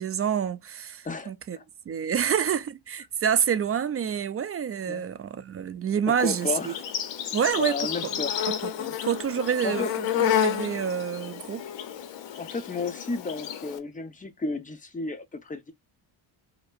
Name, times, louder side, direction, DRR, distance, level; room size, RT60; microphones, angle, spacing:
voice 1, 0.0-1.6 1.9-6.7 7.3-7.9 8.4-8.7 9.0-11.6, right 8 dB, 35° right, 0.4 m, -28 dB
voice 2, 1.0-1.6 4.9-5.0 6.1-6.8 7.6-8.4 8.8-8.9 9.6-9.9 12.4-15.7, left 3 dB, 15° left, 0.8 m, -33 dB
Insect, 6.2-13.8, left 9 dB, 65° left, 0.7 m, -31 dB
4.9 x 2.0 x 2.4 m
cardioid pair, 90°, 47 cm